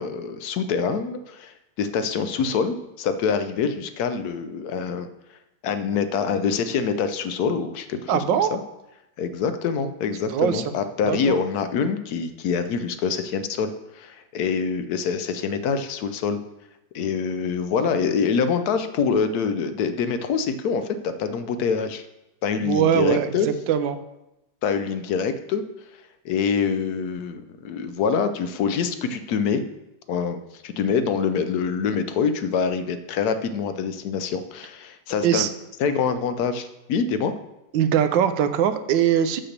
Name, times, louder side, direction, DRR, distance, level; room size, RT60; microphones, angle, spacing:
voice 1, 0.0-5.1 5.6-8.6 9.2-16.4 16.9-22.1 22.4-23.5 24.6-25.6 26.2-29.6 30.1-35.5 35.8-37.3, left 6 dB, 65° left, 10 dB, 1.0 m, -25 dB
voice 2, 8.1-8.5 10.3-10.6 11.0-11.3 22.6-24.0 35.2-35.5 37.7-39.4, right 9 dB, 80° right, 10 dB, 1.3 m, -21 dB
6.6 x 5.9 x 6.6 m, 0.93 s
omnidirectional pair, 2.0 m